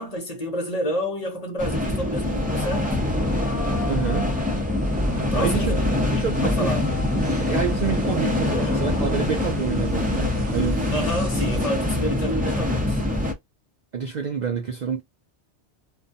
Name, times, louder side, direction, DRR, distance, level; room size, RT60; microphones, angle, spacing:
voice 1, 0.0-3.0 5.2-5.8 6.4-6.9 10.9-13.0, equal, 40° left, 0.8 m, -29 dB
sound 1, 1.6-13.3, left 1 dB, 10° right, 0.6 m, -24 dB
sound 2, 2.2-10.5, left 5 dB, 75° left, 1.0 m, -39 dB
voice 2, 3.9-4.3 5.1-5.8 6.1-6.7 7.4-10.9 13.9-15.0, right 6 dB, 60° right, 0.4 m, -28 dB
sound 3, 5.0-11.7, left 1 dB, 80° right, 1.1 m, -37 dB
2.5 x 2.2 x 2.5 m
omnidirectional pair, 1.2 m